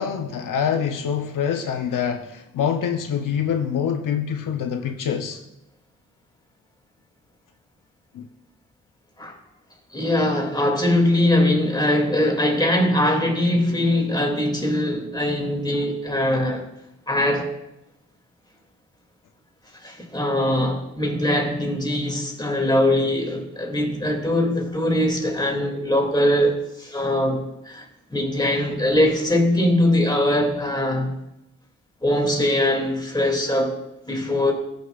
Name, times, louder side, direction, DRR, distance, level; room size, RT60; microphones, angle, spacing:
voice 1, 0.0-5.4 8.1-8.3, left 8 dB, 80° left, 0.6 m, -25 dB
voice 2, 9.9-16.6 17.1-17.5 19.8-27.9 28.1-31.1 32.0-33.8 34.1-34.5, left 1 dB, 15° left, 2.2 m, -21 dB
14.0 x 6.6 x 2.4 m
cardioid pair, 60°, 31 cm